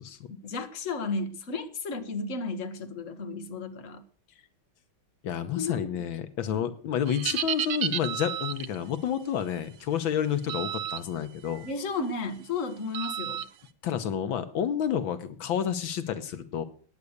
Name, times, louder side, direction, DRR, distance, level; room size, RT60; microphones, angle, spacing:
voice 1, 0.3-4.0 5.5-5.8 6.5-6.7 11.6-13.4, left 4 dB, 40° left, 1.7 m, -33 dB
voice 2, 5.2-11.7 13.8-16.6, left 9 dB, 80° left, 1.8 m, -30 dB
sound 1, 7.1-8.8 10.5-11.0 11.5-11.7 12.9-13.5, right 10 dB, 70° right, 1.5 m, -31 dB
15.5 x 9.7 x 6.6 m
omnidirectional pair, 2.2 m